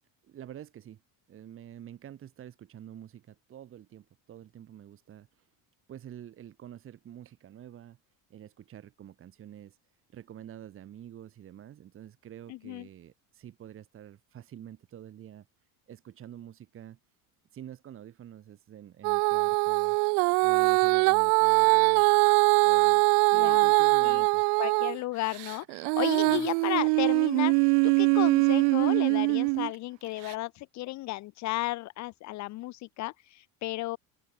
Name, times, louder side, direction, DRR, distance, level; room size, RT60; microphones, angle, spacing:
voice 1, 0.2-1.0 1.3-5.5 5.9-8.0 8.3-9.8 10.1-15.5 15.9-17.0 17.5-20.0 20.4-22.0 22.6-24.4 26.3-26.5, right 11 dB, 30° right, 3.2 m, -47 dB
voice 2, 12.5-12.9 23.3-23.7 24.0-24.2 24.6-34.0, left 18 dB, 45° left, 1.0 m, -34 dB
Female singing, 19.0-25.0 25.4-29.7 30.3-30.4, right 40 dB or more, 75° right, 0.5 m, -23 dB
cardioid pair, 170°, 40 cm